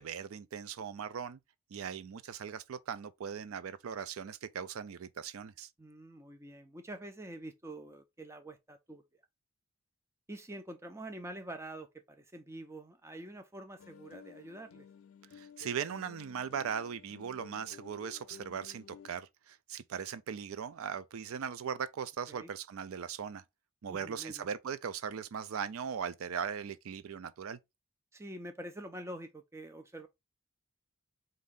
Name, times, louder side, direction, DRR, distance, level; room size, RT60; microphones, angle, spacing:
voice 1, 0.0-1.4 1.7-5.7 15.3-23.4 23.8-27.6, right 7 dB, 70° right, 0.4 m, -39 dB
voice 2, 5.8-9.0 10.3-14.9 22.3-22.5 23.9-24.5 28.1-30.1, right 1 dB, 10° right, 0.5 m, -46 dB
sound 1, 13.8-19.1, left 7 dB, 70° left, 0.4 m, -54 dB
4.2 x 2.6 x 3.6 m
head